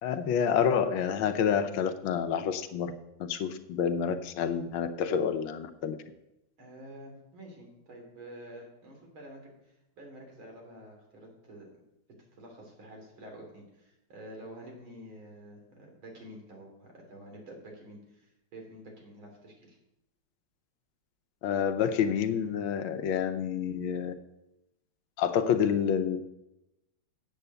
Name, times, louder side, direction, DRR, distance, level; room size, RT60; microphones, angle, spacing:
voice 1, 0.0-2.9 3.2-6.0 21.4-24.1 25.2-26.2, left 7 dB, 85° left, 9 dB, 1.6 m, -28 dB
voice 2, 6.6-11.7 12.4-19.8, right 1 dB, 85° right, 1 dB, 3.7 m, -48 dB
9.0 x 7.5 x 6.9 m, 0.91 s
omnidirectional pair, 2.2 m